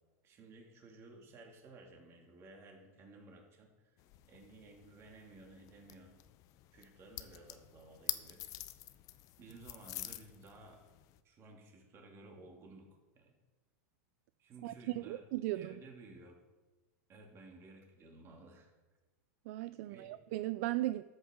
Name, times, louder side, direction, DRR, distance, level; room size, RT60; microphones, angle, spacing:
voice 1, 0.2-4.0 4.3-6.2 6.7-8.4 9.4-10.8 11.2-12.9 13.1-13.3 14.4-15.2 15.5-16.4 17.1-18.7 19.8-20.2, right 2 dB, 30° right, 2.3 m, -56 dB
sound 1, 4.0-11.2, left 15 dB, 40° left, 0.6 m, -47 dB
voice 2, 14.6-15.8 19.5-21.0, right 16 dB, 60° right, 0.3 m, -37 dB
13.5 x 7.9 x 3.7 m
supercardioid pair, 135°, 9 cm